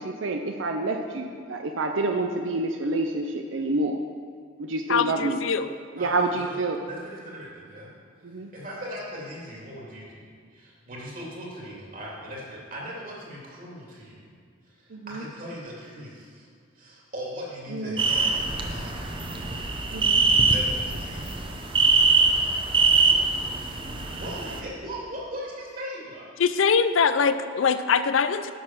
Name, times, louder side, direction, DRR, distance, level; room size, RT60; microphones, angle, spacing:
voice 1, 0.0-4.0 4.6-5.4 6.0-6.8 8.2-8.5 14.9-15.2 17.7-18.0 19.9-20.2, right 2 dB, 75° right, 4 dB, 0.6 m, -28 dB
voice 2, 4.9-5.7 26.4-28.5, left 6 dB, 80° left, 12 dB, 0.5 m, -22 dB
voice 3, 6.0-6.6 6.8-7.9 8.5-10.3 10.5-14.3 14.6-16.5 16.7-19.6 20.5-21.4 24.1-26.2, equal, 45° right, -4 dB, 2.9 m, -39 dB
sound 1, 18.0-24.6, right 4 dB, 25° right, 0.8 m, -23 dB
10.5 x 6.7 x 6.0 m, 2.1 s
head